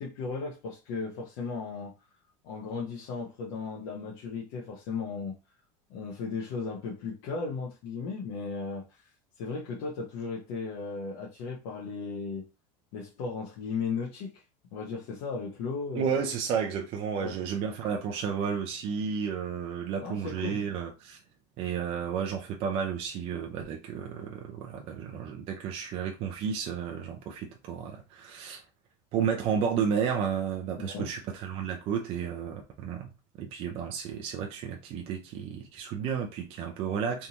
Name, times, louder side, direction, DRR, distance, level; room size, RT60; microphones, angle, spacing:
voice 1, 0.0-1.9 2.4-5.3 5.9-9.1 9.4-12.4 12.9-14.4 14.7-16.2 17.2-17.4 20.0-20.6 30.8-31.1, left 4 dB, 55° left, 0.9 m, -36 dB
voice 2, 15.9-21.2 21.6-28.6 29.1-33.1 33.4-37.3, right 7 dB, 35° right, 0.5 m, -32 dB
3.4 x 2.7 x 2.9 m
supercardioid pair, 165°, 18 cm